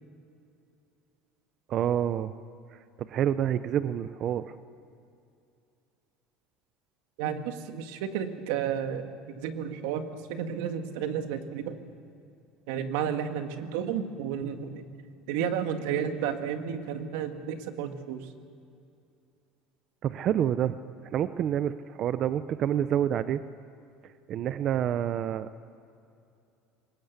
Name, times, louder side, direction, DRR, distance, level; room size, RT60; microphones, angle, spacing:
voice 1, 1.7-2.3 2.7-4.5 20.0-20.8 21.1-23.4 24.3-25.5, right 10 dB, 35° right, 13 dB, 0.5 m, -28 dB
voice 2, 7.2-11.8 12.7-14.8 15.3-18.3, right 8 dB, 85° right, 7 dB, 1.8 m, -32 dB
22.0 x 19.0 x 8.1 m, 2.6 s
cardioid pair, 170°, 0 cm